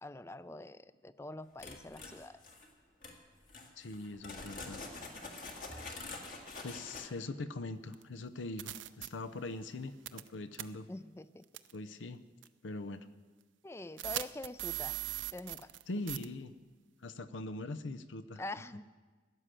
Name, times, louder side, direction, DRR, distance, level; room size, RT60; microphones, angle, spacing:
voice 1, 0.0-2.4 10.9-11.4 13.6-14.9 15.3-15.7 18.4-18.8, left 2 dB, 15° left, 15 dB, 0.4 m, -45 dB
sound 1, 1.6-2.7 3.0-3.2 3.5-7.1, left 3 dB, 45° left, 1.9 m, -46 dB
voice 2, 3.8-4.8 6.6-10.9 11.7-12.2 12.6-13.1 15.9-16.5 17.0-18.4, left 2 dB, 90° left, 13 dB, 0.7 m, -42 dB
sound 2, 7.9-8.0 8.6-9.1 10.1-10.3 10.5-10.6 11.5-11.7 12.4-12.5 14.0-16.2, right 15 dB, 85° right, 0.5 m, -38 dB
16.0 x 10.0 x 7.6 m, 1.4 s
head